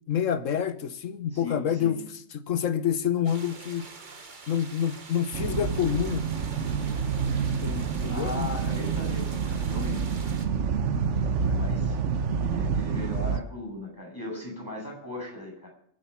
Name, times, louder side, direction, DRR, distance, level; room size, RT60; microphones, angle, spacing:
voice 1, 0.1-2.0 2.3-3.9 4.5-6.2 7.6-8.5, left 9 dB, 75° left, 1.4 m, -27 dB
voice 2, 1.3-1.9 8.1-10.0 11.1-12.0 12.4-15.7, left 1 dB, 15° left, 8.0 m, -37 dB
sound 1, 3.2-10.5, right 4 dB, 40° right, 1.5 m, -46 dB
sound 2, 5.3-13.4, right 6 dB, 65° right, 1.2 m, -28 dB
25.0 x 8.6 x 5.7 m
omnidirectional pair, 1.4 m